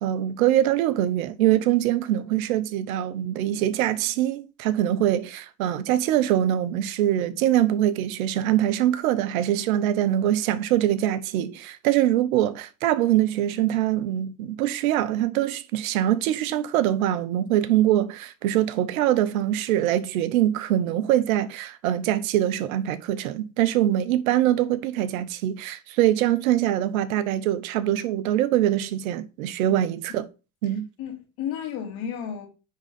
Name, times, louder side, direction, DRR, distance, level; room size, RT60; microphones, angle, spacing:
voice 1, 0.0-30.3 30.6-30.9, right 12 dB, 85° right, 0.8 m, -23 dB
voice 2, 31.0-32.5, left 8 dB, 65° left, 2.6 m, -33 dB
9.5 x 3.7 x 4.1 m
supercardioid pair, 95°, 41 cm